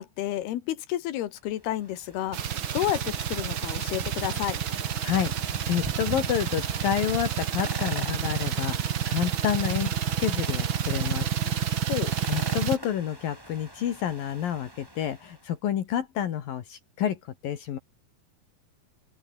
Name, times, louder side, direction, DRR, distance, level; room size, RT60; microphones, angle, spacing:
voice 1, 0.0-2.4 2.7-4.6 11.9-12.1, left 13 dB, 85° left, 3.4 m, -30 dB
sound 1, 1.4-15.5, right 1 dB, 5° right, 4.6 m, -44 dB
sound 2, 2.3-12.8, right 9 dB, 70° right, 1.1 m, -29 dB
voice 2, 5.0-9.9 10.2-11.7 12.3-17.8, left 10 dB, 65° left, 3.4 m, -29 dB
open air
omnidirectional pair, 4.5 m